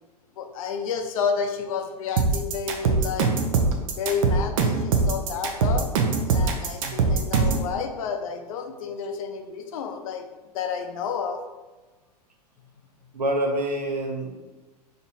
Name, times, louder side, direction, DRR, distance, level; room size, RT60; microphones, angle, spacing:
voice 1, 0.4-3.3 4.0-5.9 6.3-10.3 10.5-11.4, left 6 dB, 60° left, 6 dB, 0.6 m, -30 dB
sound 1, 2.2-7.7, right 4 dB, 55° right, 0.7 m, -22 dB
voice 2, 6.8-7.1 13.1-14.3, right 1 dB, 85° right, 2 dB, 0.8 m, -27 dB
5.3 x 2.9 x 2.7 m, 1.2 s
hypercardioid pair, 105°, 21 cm